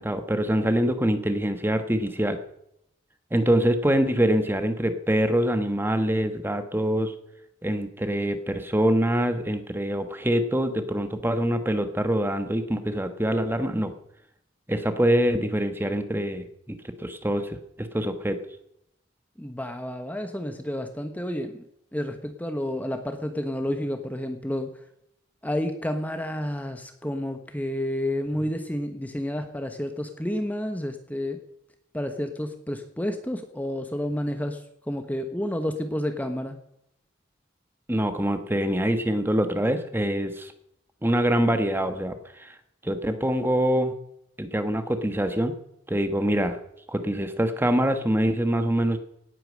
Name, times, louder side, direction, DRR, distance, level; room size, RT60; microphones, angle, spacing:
voice 1, 0.0-2.4 3.3-7.1 7.6-13.9 14.7-18.4 37.9-40.5 41.0-42.6 42.8-43.9 44.4-45.5 45.9-46.6 46.9-49.0, equal, 10° right, 8 dB, 1.3 m, -25 dB
voice 2, 19.4-21.6 21.9-24.8 25.4-31.4 31.9-34.6 34.9-36.6, left 1 dB, 10° left, 7 dB, 1.1 m, -30 dB
18.0 x 8.9 x 6.4 m, 0.76 s
head